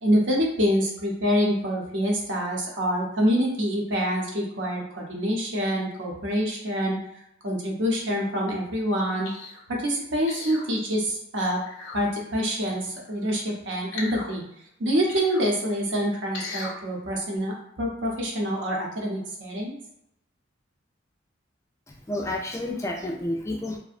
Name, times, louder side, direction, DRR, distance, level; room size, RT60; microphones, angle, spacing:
voice 1, 0.0-7.0 7.4-9.3 9.7-11.6 11.9-14.4 14.8-19.8, equal, 75° right, -1 dB, 0.7 m, -26 dB
sound 1, 9.2-9.6 10.3-10.7 11.6-12.0 13.9-14.3 15.1-15.4 16.3-16.8 17.4-17.5, left 3 dB, 85° left, 0.6 m, -37 dB
voice 2, 21.9-23.8, left 1 dB, 15° left, 0 dB, 0.3 m, -30 dB
2.6 x 2.1 x 2.4 m, 0.79 s
head